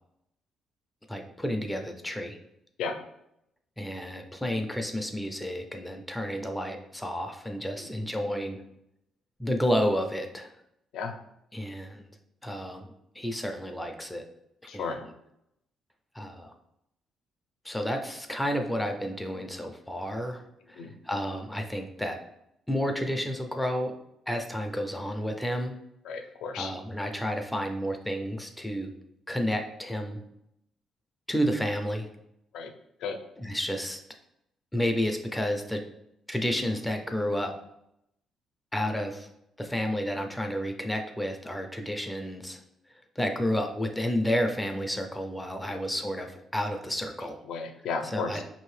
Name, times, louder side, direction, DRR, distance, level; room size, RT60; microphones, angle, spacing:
voice 1, 1.1-2.4 3.8-8.6 9.4-10.5 11.5-12.1 12.4-12.9 13.2-14.2 14.7-15.1 16.1-16.5 17.6-22.2 22.7-23.9 24.3-25.7 26.6-28.9 29.3-30.2 31.3-32.1 33.4-34.0 34.7-35.8 36.3-37.5 38.7-39.3 39.6-42.6 43.2-47.4 48.0-48.4, equal, 5° left, 5 dB, 0.4 m, -31 dB
voice 2, 14.7-15.0 20.8-20.9 26.0-26.7 32.5-32.7 33.0-33.2 45.7-45.8 47.5-48.4, left 5 dB, 80° left, 6 dB, 0.5 m, -34 dB
5.1 x 2.7 x 3.1 m, 0.81 s
cardioid pair, 150°, 0 cm